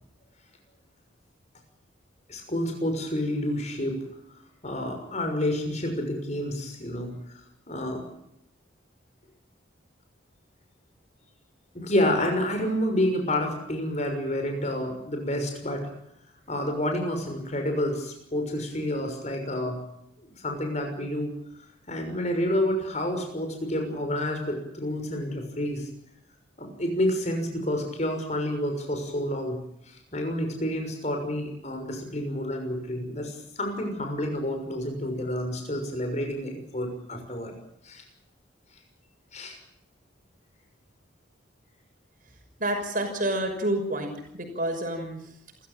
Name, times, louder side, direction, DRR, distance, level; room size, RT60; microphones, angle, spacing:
voice 1, 2.3-4.0 4.6-7.4 7.7-8.0 11.7-15.9 16.5-19.8 20.2-21.3 21.9-25.9 26.6-29.6 30.1-37.5 37.8-38.0 39.3-39.6, left 1 dB, 35° left, 5 dB, 6.2 m, -29 dB
voice 2, 42.6-45.2, right 1 dB, 45° right, 3 dB, 6.0 m, -29 dB
28.5 x 15.0 x 9.0 m, 0.78 s
head